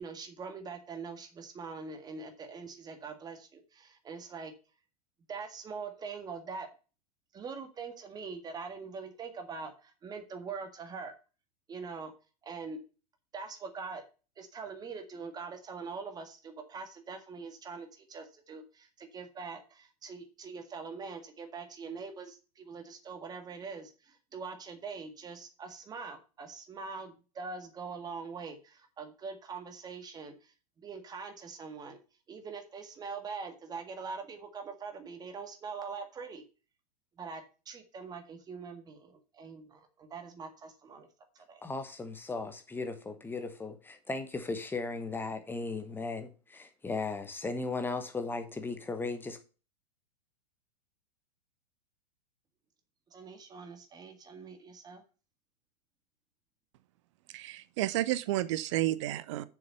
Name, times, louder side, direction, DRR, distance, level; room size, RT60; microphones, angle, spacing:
voice 1, 0.0-4.5 5.3-6.7 7.3-11.1 11.7-12.1 12.4-12.8 13.3-14.0 14.4-32.0 32.3-36.4 37.2-41.1 41.4-41.6 53.1-55.0, right 5 dB, 20° right, 1.9 m, -43 dB
voice 2, 41.6-49.4, left 3 dB, 10° left, 1.1 m, -36 dB
voice 3, 57.3-59.4, right 15 dB, 45° right, 0.8 m, -31 dB
7.1 x 6.9 x 5.7 m
figure-of-eight pair, 95°, 21 cm